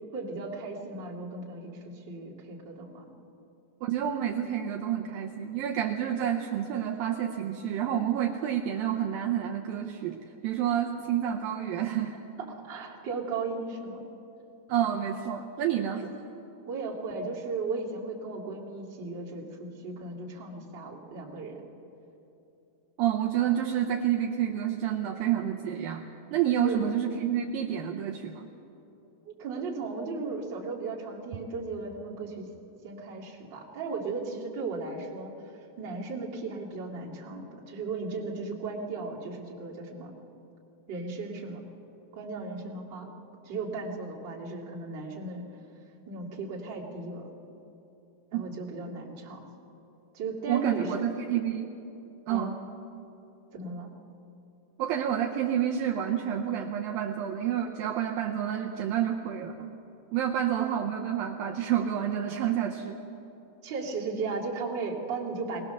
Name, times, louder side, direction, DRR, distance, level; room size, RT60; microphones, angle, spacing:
voice 1, 0.1-3.1 12.5-14.0 16.7-21.6 26.6-26.8 29.3-32.5 32.8-35.4 35.8-40.2 40.9-41.7 42.1-43.1 43.4-45.4 46.1-47.3 48.3-49.4 50.1-50.9 52.3-52.6 53.5-53.9 63.6-65.6, right 3 dB, 35° right, -3 dB, 2.3 m, -36 dB
voice 2, 3.8-12.2 14.7-16.2 23.0-28.5 48.3-48.4 50.5-51.7 52.3-52.6 54.8-59.7 60.1-63.0, right 10 dB, 75° right, 2 dB, 2.3 m, -29 dB
22.0 x 19.0 x 6.8 m, 2.9 s
omnidirectional pair, 4.5 m